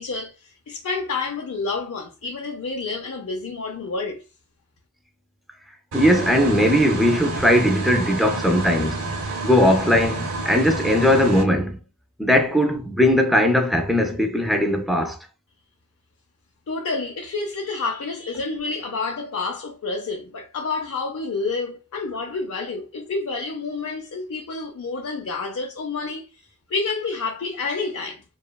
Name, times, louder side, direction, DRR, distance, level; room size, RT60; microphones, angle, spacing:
voice 1, 0.0-4.2 16.7-26.4 26.7-28.2, left 3 dB, 70° left, 0.5 m, -29 dB
voice 2, 5.9-9.1 9.4-11.8 12.2-15.2, left 1 dB, ahead, 0.3 m, -19 dB
sound 1, 5.9-11.4, right 2 dB, 75° right, 0.7 m, -29 dB
2.9 x 2.2 x 2.2 m
head